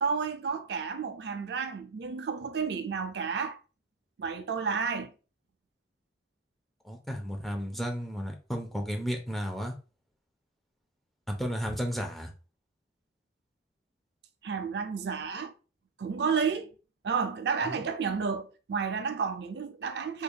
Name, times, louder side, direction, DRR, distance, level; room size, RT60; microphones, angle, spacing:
voice 1, 0.0-3.6 4.2-5.1 14.4-15.5 16.0-16.7 17.0-20.2, right 5 dB, 60° right, 0.4 m, -31 dB
voice 2, 6.8-9.7 11.3-12.3 17.6-17.9, equal, ahead, 0.6 m, -33 dB
3.5 x 3.3 x 2.2 m
head